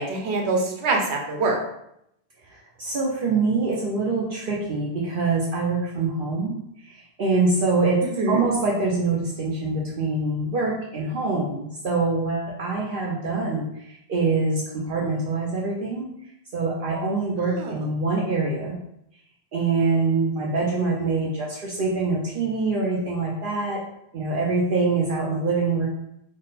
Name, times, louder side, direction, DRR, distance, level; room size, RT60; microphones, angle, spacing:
voice 1, 0.0-1.5 8.2-8.4 17.5-17.8, right 3 dB, 90° right, 1 dB, 1.0 m, -24 dB
voice 2, 2.8-6.6 7.2-8.0 8.3-13.7 14.1-16.1 16.5-18.8 19.5-23.8 24.1-25.9, right 3 dB, 60° right, -4 dB, 0.8 m, -24 dB
3.6 x 2.1 x 4.0 m, 0.77 s
omnidirectional pair, 1.1 m